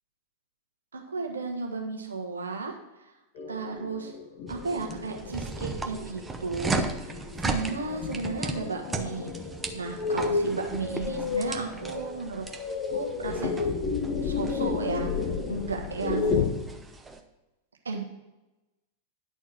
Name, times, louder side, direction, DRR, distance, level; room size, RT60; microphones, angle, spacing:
voice 1, 0.9-3.1 3.5-4.1 4.5-9.3 9.7-12.4 12.9-13.7 14.2-15.1 15.5-16.5 17.8-18.0, right 4 dB, 70° right, 1 dB, 1.5 m, -34 dB
sound 1, 3.4-16.5, left 5 dB, 45° left, 1.0 m, -32 dB
sound 2, 4.5-17.2, right 3 dB, 10° right, 0.7 m, -37 dB
10.5 x 4.5 x 6.1 m, 1.0 s
figure-of-eight pair, 90°, 0 cm